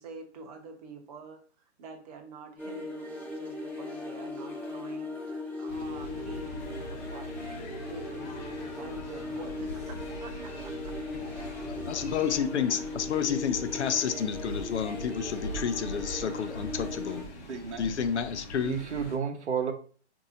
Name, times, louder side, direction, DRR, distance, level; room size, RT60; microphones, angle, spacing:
voice 1, 0.0-1.4 1.8-7.5 7.9-11.0 11.3-11.5 11.9-12.1, right 3 dB, 35° right, 0.7 m, -47 dB
sound 1, 2.6-17.2, left 2 dB, 5° left, 0.6 m, -38 dB
sound 2, 5.7-19.2, equal, 35° left, 1.0 m, -42 dB
voice 2, 11.9-17.3 17.8-18.8, left 7 dB, 75° left, 0.6 m, -30 dB
voice 3, 17.5-17.9 18.6-19.7, right 6 dB, 85° right, 0.7 m, -31 dB
4.1 x 2.6 x 2.6 m
hypercardioid pair, 135°, 34 cm